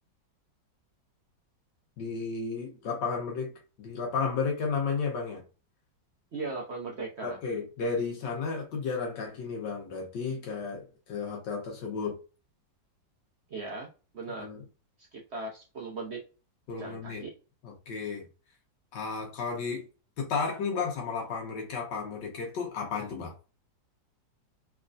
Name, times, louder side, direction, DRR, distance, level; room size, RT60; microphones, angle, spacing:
voice 1, 2.0-3.5 3.8-5.4 7.2-12.2 14.4-14.6 16.7-17.2 17.6-18.2 18.9-19.9 20.2-23.3, left 5 dB, 75° left, 1.5 m, -33 dB
voice 2, 6.3-7.4 13.5-13.9 14.1-14.5 15.1-16.2 16.8-17.3, right 3 dB, 55° right, 0.8 m, -38 dB
3.5 x 3.3 x 2.4 m
omnidirectional pair, 2.0 m